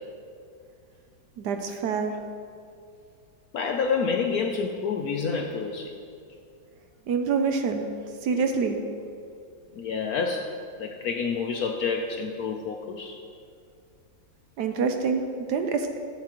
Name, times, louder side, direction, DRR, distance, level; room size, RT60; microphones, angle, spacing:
voice 1, 1.4-2.2 7.1-7.8 8.2-8.8 14.6-15.9, right 5 dB, 70° right, 6 dB, 1.1 m, -26 dB
voice 2, 3.5-5.9 9.8-10.5 10.8-13.2, left 5 dB, 70° left, 3 dB, 0.9 m, -28 dB
14.5 x 7.3 x 3.0 m, 2.4 s
omnidirectional pair, 2.0 m